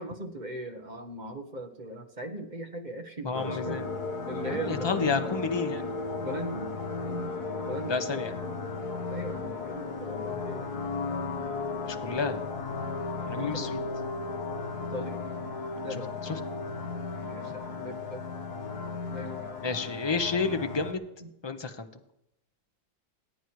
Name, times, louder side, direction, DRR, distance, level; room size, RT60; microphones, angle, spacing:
voice 1, 0.0-3.8 4.3-5.1 6.2-6.7 7.0-7.3 7.6-8.3 9.1-10.7 13.4-13.7 14.8-15.2 15.8-16.1 17.2-18.2 19.1-19.8 21.2-21.3, right 1 dB, 25° right, 4 dB, 1.4 m, -39 dB
voice 2, 3.2-3.8 4.4-5.9 7.9-8.3 11.8-12.4 13.3-13.8 16.2-16.4 19.6-21.0 21.4-21.9, left 4 dB, 30° left, 7 dB, 0.5 m, -30 dB
sound 1, 3.3-20.9, left 4 dB, 60° left, 1.7 m, -35 dB
27.5 x 9.4 x 4.7 m, 0.86 s
omnidirectional pair, 2.1 m